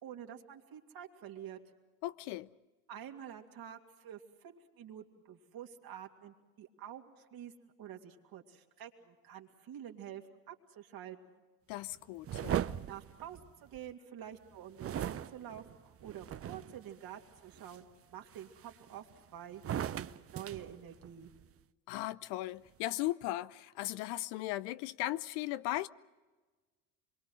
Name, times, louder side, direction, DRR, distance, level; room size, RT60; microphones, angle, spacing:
voice 1, 0.0-1.6 2.9-11.4 12.9-20.1 20.3-21.3, right 10 dB, 50° right, 2.8 m, -48 dB
voice 2, 2.0-2.5 11.7-12.6 21.9-25.9, left 16 dB, 60° left, 0.8 m, -37 dB
sound 1, 12.2-13.9 14.8-16.8 17.4-17.8 18.3-19.1 19.5-21.4, right 10 dB, 30° right, 0.7 m, -39 dB
25.5 x 23.0 x 6.4 m
hypercardioid pair, 75°, 46 cm